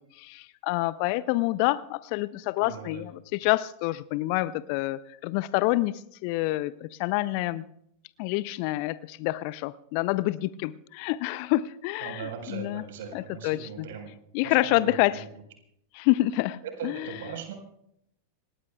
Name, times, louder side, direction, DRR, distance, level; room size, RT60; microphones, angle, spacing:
voice 1, 0.2-7.6 8.2-12.8 13.1-13.9 14.3-15.2 16.0-17.0, left 18 dB, 45° left, 0.5 m, -27 dB
voice 2, 2.6-3.0 12.0-14.1 14.4-15.3 16.6-17.5, right 7 dB, 55° right, 4.3 m, -39 dB
27.0 x 20.0 x 2.3 m
figure-of-eight pair, 90°, 0 cm